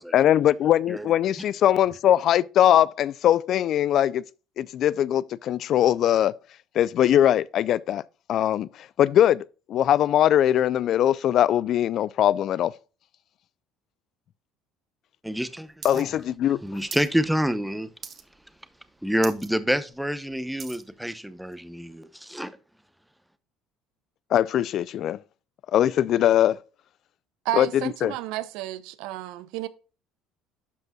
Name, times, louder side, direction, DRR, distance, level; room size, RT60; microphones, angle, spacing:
voice 1, 0.1-4.2 4.6-6.3 6.8-8.0 8.3-8.7 9.0-12.7 15.8-16.6 24.3-25.2 25.7-26.6 27.5-28.1, left 11 dB, 55° left, 0.4 m, -21 dB
voice 2, 15.2-16.2 16.6-17.9 19.0-22.6, equal, 5° right, 0.8 m, -28 dB
sound 1, 15.8-16.0 16.3-17.1 17.5-17.7 18.0-18.5 18.8-18.9 19.2-19.5 19.9-20.9 21.5-21.6, right 6 dB, 35° right, 1.1 m, -40 dB
voice 3, 27.4-29.7, right 15 dB, 80° right, 0.7 m, -31 dB
12.0 x 5.3 x 2.3 m
supercardioid pair, 100°, 0 cm